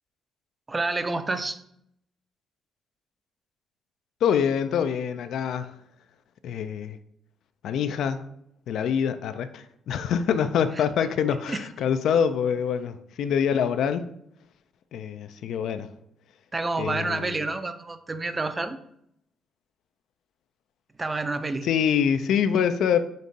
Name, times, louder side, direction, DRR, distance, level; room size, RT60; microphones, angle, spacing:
voice 1, 0.7-1.6 10.7-10.8 11.5-11.6 16.5-18.8 21.0-21.7, right 3 dB, 25° right, 10 dB, 0.4 m, -29 dB
voice 2, 4.2-5.7 6.4-7.0 7.6-8.2 8.7-14.1 14.9-15.9 16.8-17.4 21.6-23.0, left 8 dB, 75° left, 10 dB, 0.3 m, -25 dB
5.2 x 2.5 x 4.0 m, 0.73 s
cardioid pair, 90°, 0 cm